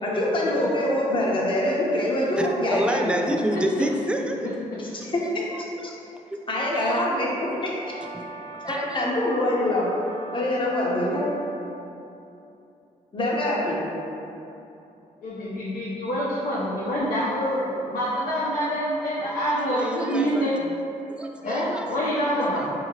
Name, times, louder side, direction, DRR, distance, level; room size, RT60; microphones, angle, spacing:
voice 1, 0.0-3.3 4.8-5.2 6.5-7.8 8.7-9.9 10.3-11.3 13.1-13.8, left 1 dB, 35° left, -5 dB, 0.8 m, -24 dB
voice 2, 2.4-4.5 5.0-5.1 5.9-6.0 8.1-8.2 8.6-9.0 19.2-20.5 21.1-21.9 22.1-22.2 22.5-22.7, right 1 dB, 5° right, 2 dB, 0.3 m, -29 dB
Brass instrument, 7.8-11.7, right 2 dB, 85° right, 0.8 m, -41 dB
voice 3, 15.2-20.6 21.4-22.7, equal, 75° left, -9 dB, 0.7 m, -26 dB
3.7 x 2.8 x 2.9 m, 2.8 s
cardioid pair, 65°, 15 cm